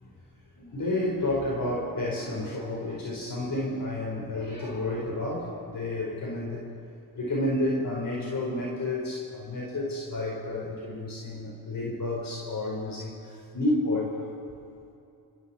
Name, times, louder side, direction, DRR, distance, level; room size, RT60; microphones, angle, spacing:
voice 1, 0.6-6.6 7.1-14.3, left 1 dB, 55° left, -2 dB, 4.3 m, -30 dB
26.0 x 24.0 x 4.3 m, 2.7 s
cardioid pair, 60°, 40 cm